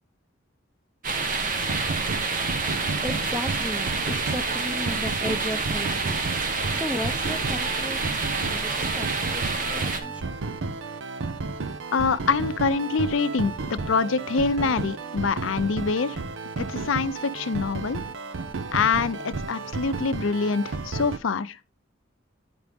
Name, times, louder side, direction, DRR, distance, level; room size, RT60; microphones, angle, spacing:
sound 1, 1.0-10.0, right 4 dB, 45° right, 1.1 m, -28 dB
sound 2, 1.6-21.2, right 3 dB, 85° right, 0.6 m, -33 dB
voice 1, 2.2-2.6 3.0-6.2 6.5-8.1 8.5-10.4, left 1 dB, 5° right, 0.6 m, -35 dB
voice 2, 11.9-16.2 16.6-18.0 18.7-21.6, left 4 dB, 90° left, 0.6 m, -25 dB
9.2 x 6.1 x 3.4 m
head